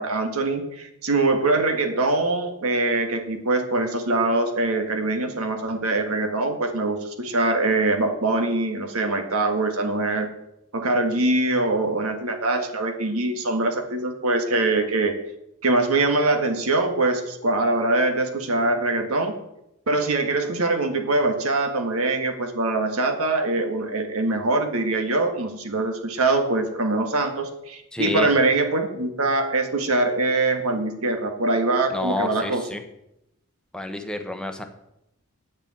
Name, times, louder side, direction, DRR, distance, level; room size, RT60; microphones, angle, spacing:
voice 1, 0.0-10.3 10.7-15.1 15.6-19.4 19.9-32.6, right 2 dB, 75° right, 5 dB, 1.6 m, -23 dB
voice 2, 27.9-28.3 31.9-32.8 33.7-34.6, left 1 dB, 5° left, 5 dB, 1.0 m, -29 dB
8.5 x 6.8 x 8.6 m, 0.84 s
head